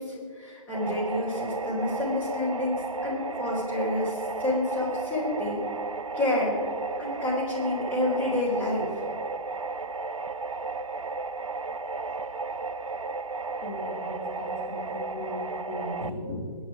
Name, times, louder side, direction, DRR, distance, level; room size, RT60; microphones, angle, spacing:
voice 1, 0.0-5.6 6.1-6.6 7.0-8.9, left 1 dB, 10° left, -5 dB, 3.9 m, -29 dB
Voice aah techno, 0.7-16.1, right 3 dB, 90° right, 0.7 m, -34 dB
voice 2, 13.6-16.6, left 2 dB, 35° left, -2 dB, 3.2 m, -37 dB
21.0 x 10.0 x 4.9 m, 2.1 s
figure-of-eight pair, 140°, 17 cm